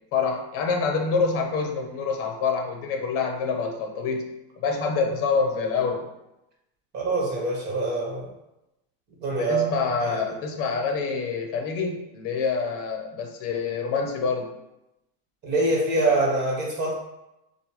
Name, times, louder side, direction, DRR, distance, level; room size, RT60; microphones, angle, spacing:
voice 1, 0.1-4.3 4.6-6.1 9.4-14.5, left 5 dB, 45° left, 3 dB, 0.9 m, -26 dB
voice 2, 6.9-8.3 9.2-10.2 15.4-16.9, right 2 dB, 35° right, -3 dB, 1.6 m, -25 dB
6.7 x 2.3 x 3.2 m, 0.91 s
cardioid pair, 150°, 31 cm